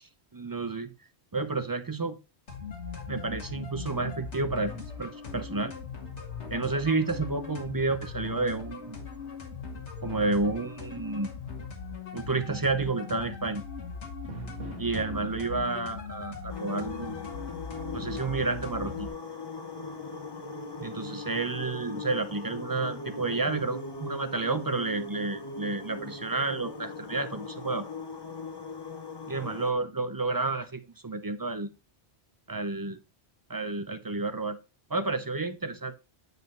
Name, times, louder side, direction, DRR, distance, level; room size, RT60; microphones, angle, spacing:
voice 1, 0.3-0.9 1.3-2.2 3.1-5.7 6.5-9.0 10.0-11.3 12.1-13.6 14.8-17.3 17.9-19.1 20.8-27.8 29.3-31.7 32.5-33.0 33.5-34.6 34.9-36.0, right 3 dB, 30° right, 10 dB, 0.4 m, -30 dB
sound 1, 2.5-19.1, left 6 dB, 85° left, 2.0 m, -40 dB
Drum, 14.3-16.3, right 5 dB, 60° right, 1.4 m, -41 dB
sound 2, 16.5-29.7, left 3 dB, 25° left, 0.8 m, -40 dB
9.1 x 5.3 x 3.1 m, 0.30 s
omnidirectional pair, 1.1 m